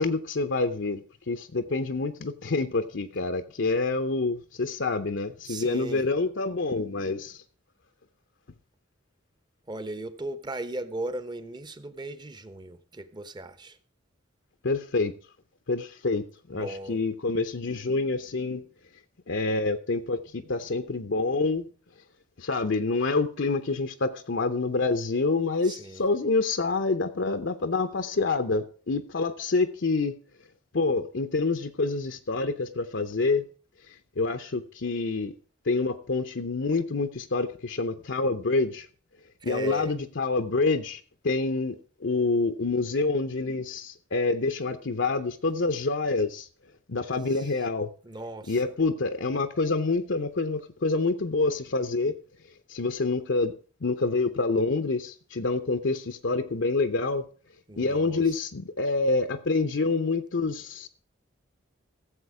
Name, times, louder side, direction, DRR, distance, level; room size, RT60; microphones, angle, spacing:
voice 1, 0.0-7.4 14.6-15.2 15.7-18.6 19.3-21.7 22.4-30.1 30.7-33.4 33.9-35.3 35.6-38.9 39.4-46.5 46.9-47.9 48.5-52.1 52.7-53.5 53.8-57.2 57.8-60.9, left 3 dB, 65° left, 0.8 m, -27 dB
voice 2, 5.5-6.0 9.7-13.8 16.5-17.0 25.6-26.0 39.4-39.9 47.3-47.4 48.0-48.7 57.7-58.2, right 2 dB, 20° right, 0.9 m, -37 dB
15.5 x 7.6 x 4.8 m
head